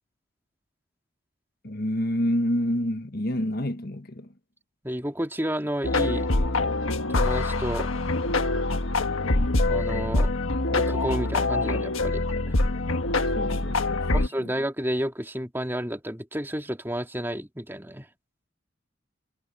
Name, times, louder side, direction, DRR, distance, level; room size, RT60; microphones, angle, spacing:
voice 1, 1.6-4.3 13.3-14.5, equal, 50° left, 1.5 m, -28 dB
voice 2, 4.8-6.3 7.2-7.9 9.7-10.3 10.7-12.5 14.1-18.1, equal, 10° right, 2.8 m, -31 dB
sound 1, 5.8-14.3, left 2 dB, 80° left, 1.5 m, -24 dB
head